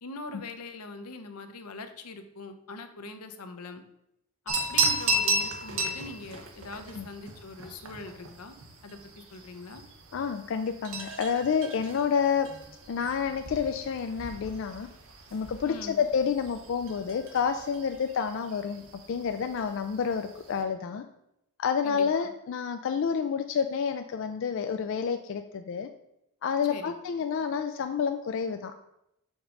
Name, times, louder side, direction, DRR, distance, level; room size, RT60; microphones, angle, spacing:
voice 1, 0.0-3.8 4.5-8.5 8.8-9.0 9.3-9.8 15.6-16.0 21.8-22.3 26.7-26.9, left 3 dB, 90° left, 8 dB, 0.7 m, -42 dB
sound 1, 4.5-20.6, right 2 dB, 65° right, 1.0 m, -35 dB
voice 2, 10.1-12.5 12.9-14.9 15.3-21.0 21.6-25.9 26.4-28.8, left 6 dB, 55° left, 7 dB, 0.3 m, -29 dB
5.3 x 3.8 x 5.9 m, 0.83 s
head